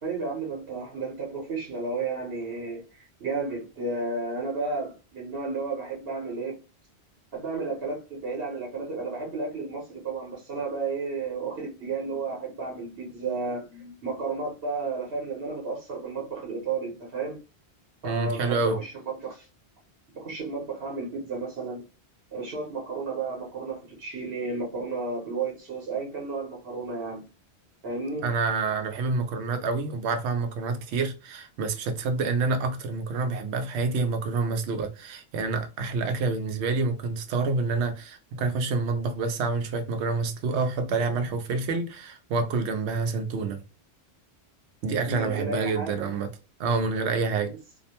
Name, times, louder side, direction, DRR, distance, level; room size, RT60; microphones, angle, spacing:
voice 1, 0.0-6.6 7.3-17.4 18.0-18.9 19.2-19.5 20.2-21.8 22.3-27.2 27.8-28.3 45.1-46.1 47.3-47.4, right 4 dB, 65° right, 1.1 m, -32 dB
voice 2, 18.0-18.8 28.2-43.6 44.8-46.3 46.6-47.5, right 4 dB, 85° right, 0.9 m, -27 dB
2.5 x 2.0 x 2.8 m
omnidirectional pair, 1.1 m